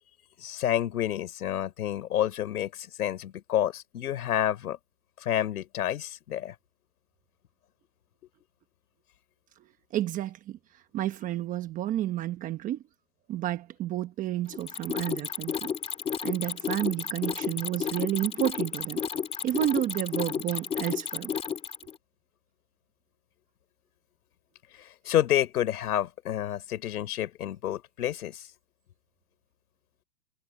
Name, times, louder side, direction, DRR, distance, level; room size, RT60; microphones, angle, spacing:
voice 1, 0.4-4.8 5.2-6.5 25.0-28.4, left 11 dB, 65° left, 6.2 m, -29 dB
voice 2, 9.9-10.6 10.9-12.8 13.3-15.7 16.2-19.0 19.4-21.3, right 13 dB, 15° right, 1.0 m, -30 dB
Mechanisms, 14.5-21.9, left 7 dB, 10° left, 2.4 m, -32 dB
hypercardioid pair, 150°, 47 cm